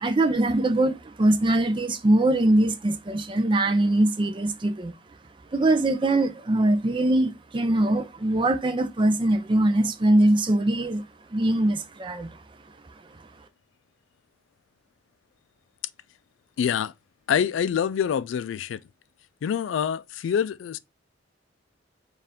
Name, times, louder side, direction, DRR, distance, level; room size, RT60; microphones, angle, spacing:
voice 1, 0.0-5.0 5.5-11.0 11.3-12.3, right 1 dB, 25° right, 0.4 m, -22 dB
voice 2, 16.6-16.9 17.3-18.8 19.4-20.8, left 8 dB, 80° left, 0.3 m, -26 dB
4.4 x 2.5 x 3.5 m
head